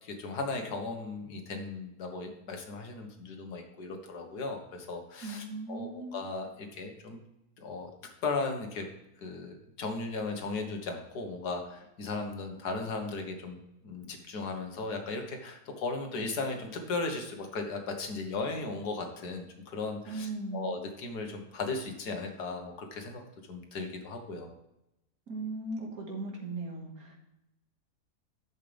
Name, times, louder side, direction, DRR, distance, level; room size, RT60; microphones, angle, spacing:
voice 1, 0.0-7.2 7.6-7.9 8.2-8.9 9.2-23.2 23.5-24.5, left 3 dB, 80° left, 4 dB, 1.9 m, -36 dB
voice 2, 5.2-6.3 20.1-20.7 25.3-27.2, right 3 dB, 65° right, -1 dB, 2.4 m, -38 dB
11.0 x 7.5 x 3.4 m, 0.89 s
omnidirectional pair, 1.7 m